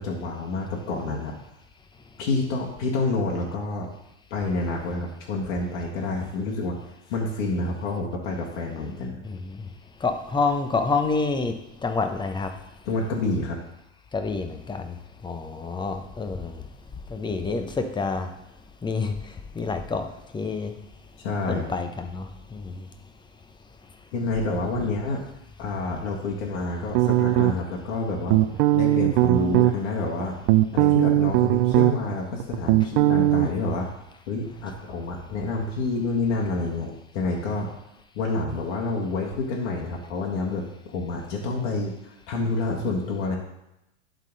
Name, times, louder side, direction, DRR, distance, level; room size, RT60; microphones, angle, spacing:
voice 1, 0.0-1.4 2.2-3.9 4.3-6.8 7.1-9.2 12.8-13.6 21.2-21.7 24.1-25.2 25.6-28.4 28.7-30.3 30.7-33.9 34.3-37.7 38.1-43.4, left 3 dB, 60° left, -2 dB, 1.7 m, -28 dB
voice 2, 9.2-9.7 10.0-11.6 11.8-12.5 14.1-14.9 15.2-16.6 17.1-18.3 18.8-20.1 20.3-20.8 21.5-22.9, left 4 dB, 10° left, 7 dB, 0.7 m, -28 dB
sound 1, 26.9-27.8 28.3-29.7 30.2-32.1 32.4-33.5, right 15 dB, 50° right, 0.5 m, -19 dB
11.0 x 3.8 x 4.0 m, 0.89 s
hypercardioid pair, 105°, 38 cm